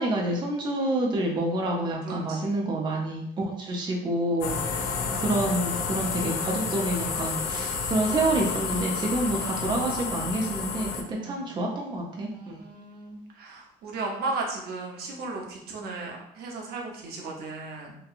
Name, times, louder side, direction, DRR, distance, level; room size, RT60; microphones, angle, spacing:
voice 1, 0.0-12.6, right 1 dB, 25° right, -1 dB, 0.4 m, -28 dB
voice 2, 2.0-2.6 5.1-5.3 11.0-11.6 12.3-17.9, right 3 dB, 65° right, 0 dB, 0.7 m, -36 dB
sound 1, 4.4-11.0, left 5 dB, 80° left, 0.4 m, -30 dB
2.8 x 2.2 x 2.4 m, 0.74 s
cardioid pair, 110°, 17 cm